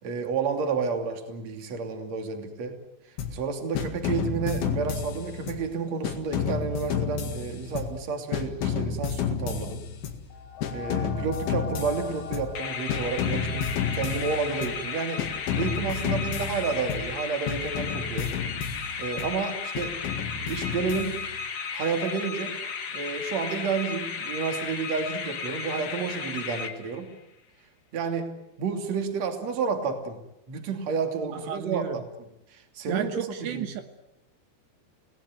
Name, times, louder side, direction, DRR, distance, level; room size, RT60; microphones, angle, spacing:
voice 1, 0.0-2.8 3.3-9.8 10.7-15.2 15.5-18.3 19.0-20.0 20.4-21.2 21.7-22.6 22.9-27.1 27.9-30.2 30.5-33.7, right 5 dB, 40° right, 6 dB, 3.5 m, -31 dB
sound 1, 3.2-3.5 3.8-5.7 6.0-8.1 8.3-10.3 10.6-12.6 12.9-14.8 15.2-17.2 17.5-19.4 19.8-21.4, left 6 dB, 80° left, 4.4 m, -31 dB
sound 2, 10.3-19.6 20.2-20.3, left 7 dB, 65° left, 4.6 m, -43 dB
sound 3, 12.5-27.2, left 6 dB, 50° left, 2.7 m, -34 dB
voice 2, 31.3-32.0 32.9-33.8, right 11 dB, 75° right, 8 dB, 3.4 m, -33 dB
29.0 x 18.5 x 9.3 m, 0.86 s
omnidirectional pair, 5.2 m